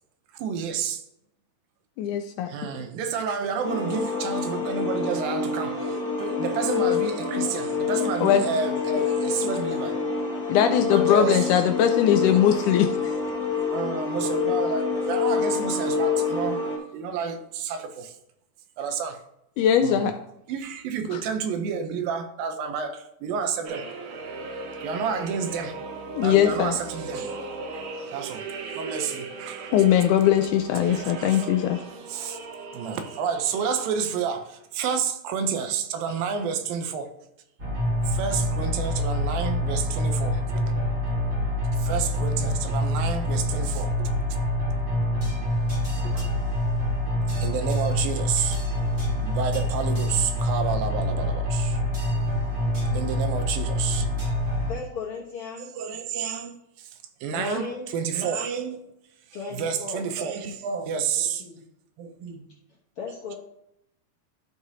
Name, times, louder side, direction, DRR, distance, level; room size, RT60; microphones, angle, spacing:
voice 1, 0.4-1.0 2.5-10.0 10.9-11.6 13.7-16.6 16.9-18.2 18.8-19.2 19.8-20.1 20.5-23.9 24.8-25.8 26.2-27.3 27.8-28.5 28.7-29.7 31.2-31.4 32.1-32.4 32.7-37.1 38.1-40.9 41.8-44.1 46.0-46.3 47.4-48.6 49.2-51.8 52.9-54.1 55.6-56.5 56.8-56.9 57.2-58.9 59.5-61.5 62.0-62.4, right 6 dB, 85° right, 2.5 m, -30 dB
voice 2, 2.0-2.5 8.2-8.5 10.5-13.1 19.6-20.1 21.1-21.2 26.2-26.8 29.7-31.8, left 10 dB, 80° left, 1.9 m, -20 dB
sound 1, 3.6-16.8, left 5 dB, 40° left, 1.7 m, -27 dB
sound 2, 23.6-34.4, right 3 dB, 70° right, 1.6 m, -38 dB
sound 3, 37.6-54.7, left 1 dB, 30° right, 1.3 m, -26 dB
voice 3, 54.7-55.7 57.3-57.9 59.3-60.1 61.2-61.6 63.0-63.3, left 5 dB, 65° left, 1.4 m, -36 dB
13.0 x 5.0 x 2.8 m
omnidirectional pair, 4.0 m